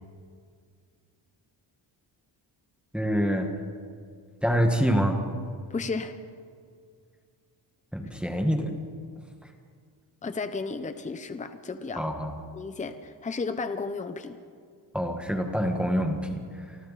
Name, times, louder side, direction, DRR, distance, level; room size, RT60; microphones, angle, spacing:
voice 1, 2.9-3.5 4.4-5.2 7.9-8.8 9.4-9.5 12.0-12.3 14.9-16.8, equal, ahead, 3 dB, 1.7 m, -26 dB
voice 2, 5.7-6.2 10.2-12.1 12.5-14.4, left 4 dB, 15° left, 9 dB, 0.9 m, -33 dB
29.5 x 25.0 x 4.2 m, 2.1 s
wide cardioid pair, 175°, 45 cm